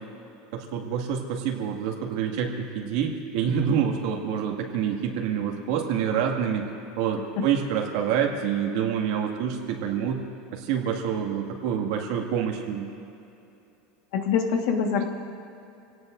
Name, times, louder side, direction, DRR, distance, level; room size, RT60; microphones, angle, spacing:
voice 1, 0.5-6.6 7.0-10.2 10.5-12.9, right 8 dB, 55° right, 1 dB, 2.0 m, -27 dB
voice 2, 14.1-15.0, left 6 dB, 55° left, 3 dB, 1.6 m, -24 dB
27.5 x 18.0 x 2.6 m, 2.8 s
supercardioid pair, 180°, 3 cm